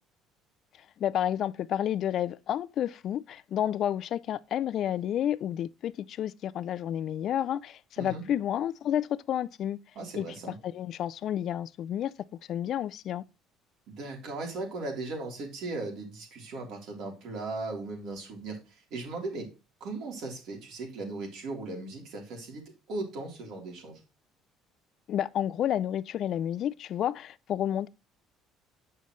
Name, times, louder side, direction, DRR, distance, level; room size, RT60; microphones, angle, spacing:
voice 1, 1.0-9.8 10.2-10.3 10.6-12.1 12.5-13.2 25.1-27.9, left 10 dB, 40° left, 0.3 m, -30 dB
voice 2, 9.9-10.5 13.9-19.5 19.8-22.6 22.9-24.0, right 2 dB, 55° right, 3.3 m, -37 dB
9.3 x 5.5 x 3.1 m
cardioid pair, 170°, 0 cm